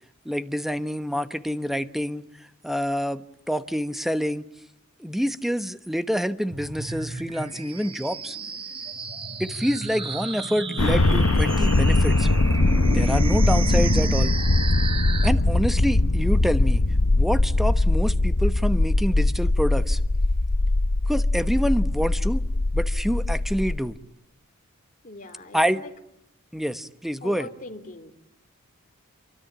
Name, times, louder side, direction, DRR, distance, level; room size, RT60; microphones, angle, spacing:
voice 1, 0.2-2.2 2.6-4.4 5.0-8.4 9.4-12.3 12.9-14.3 15.2-16.8 17.2-20.0 21.1-22.4 22.7-24.0 25.5-25.8 26.5-27.5, equal, ahead, 1.1 m, -27 dB
sound 1, 6.5-15.3, right 3 dB, 25° right, 1.6 m, -32 dB
sound 2, 10.8-23.8, left 2 dB, 70° left, 1.0 m, -21 dB
voice 2, 25.0-25.9 27.2-28.1, left 2 dB, 40° left, 3.3 m, -41 dB
27.5 x 24.0 x 8.7 m
head